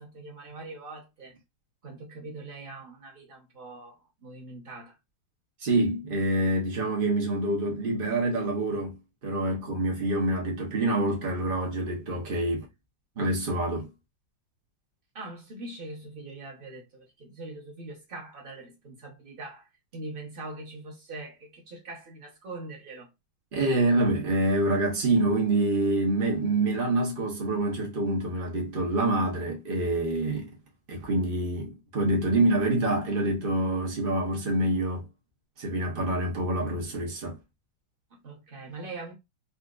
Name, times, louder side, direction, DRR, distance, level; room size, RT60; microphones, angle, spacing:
voice 1, 0.0-1.3 1.8-4.9 15.1-19.7 19.9-23.1 38.1-39.1, right 2 dB, 35° right, 0.9 m, -42 dB
voice 2, 5.6-9.0 9.2-12.7 13.2-13.9 23.5-30.5 30.9-35.1 35.6-37.4, right 2 dB, 90° right, 0.4 m, -26 dB
4.1 x 2.4 x 2.3 m
omnidirectional pair, 2.2 m